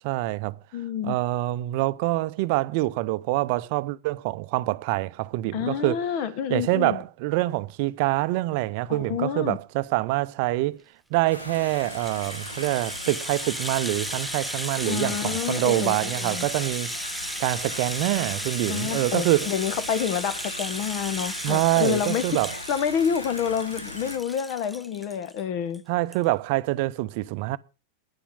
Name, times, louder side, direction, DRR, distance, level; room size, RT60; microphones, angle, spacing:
voice 1, 0.0-0.6 1.0-6.0 6.5-10.8 11.1-16.9 17.4-19.5 21.4-22.5 25.9-27.6, right 18 dB, 45° right, 0.6 m, -25 dB
voice 2, 0.7-1.2 5.5-7.0 8.9-9.6 14.8-16.5 18.7-22.2 22.5-25.8, left 8 dB, 45° left, 1.3 m, -28 dB
sound 1, 11.3-24.2, left 1 dB, 80° left, 1.5 m, -39 dB
Rattle (instrument), 11.3-25.4 25.7-25.8 26.1-26.2, equal, ahead, 0.5 m, -35 dB
10.0 x 10.0 x 6.5 m
figure-of-eight pair, 90°, 0 cm